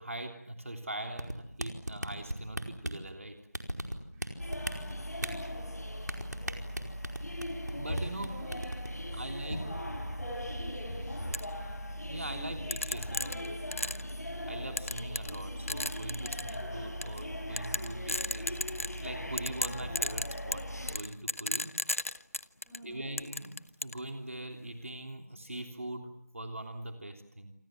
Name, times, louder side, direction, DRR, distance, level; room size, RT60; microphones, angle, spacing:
voice 1, 0.0-3.4 7.7-8.4 9.1-9.7 12.0-13.3 14.5-18.6 19.0-21.8 22.8-27.5, right 1 dB, 50° right, 5 dB, 3.2 m, -42 dB
sound 1, 1.2-3.0 3.5-4.3 4.5-5.3 6.1-7.7 8.0-8.3 8.5-8.9, right 1 dB, 80° right, 4.8 m, -35 dB
voice 2, 4.1-4.6 6.3-6.8 8.3-8.6 9.0-11.5 12.4-12.7 13.0-13.8 22.6-23.1, equal, 5° right, -6 dB, 5.8 m, -48 dB
sound 2, 4.4-21.0, equal, 70° left, 6.5 m, -39 dB
sound 3, 11.3-11.4 12.7-14.1 14.8-15.4 15.7-16.5 17.0-17.2 17.6-19.1 19.4-22.8 23.2-24.0, left 2 dB, 50° left, 1.1 m, -33 dB
28.0 x 25.0 x 7.7 m, 0.68 s
figure-of-eight pair, 175°, 9 cm